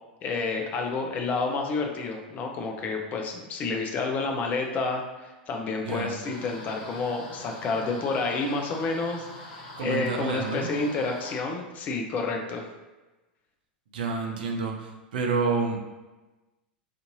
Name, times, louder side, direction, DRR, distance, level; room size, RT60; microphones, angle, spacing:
voice 1, 0.2-12.7, left 3 dB, 35° left, 2 dB, 0.4 m, -30 dB
voice 2, 5.8-6.2 9.8-10.7 13.9-15.8, right 4 dB, 70° right, 2 dB, 0.5 m, -29 dB
sound 1, 6.2-11.4, left 2 dB, 65° left, 1.0 m, -43 dB
2.6 x 2.5 x 2.6 m, 1.1 s
figure-of-eight pair, 90°, 5 cm